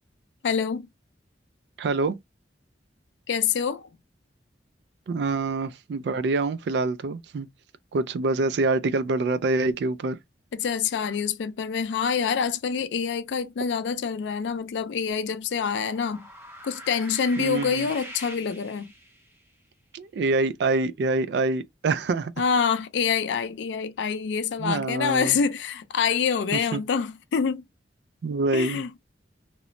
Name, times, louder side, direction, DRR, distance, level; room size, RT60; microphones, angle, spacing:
voice 1, 0.4-0.9 3.3-3.9 10.5-16.3 16.6-18.9 22.4-27.6 28.5-28.9, left 6 dB, 80° left, 0.4 m, -26 dB
voice 2, 1.8-2.2 5.1-7.5 7.9-10.2 17.4-17.9 19.9-22.3 24.6-25.4 26.5-26.8 28.2-28.8, right 3 dB, 65° right, 0.3 m, -26 dB
sound 1, 15.7-19.4, right 1 dB, 15° right, 0.8 m, -43 dB
2.9 x 2.0 x 2.5 m
head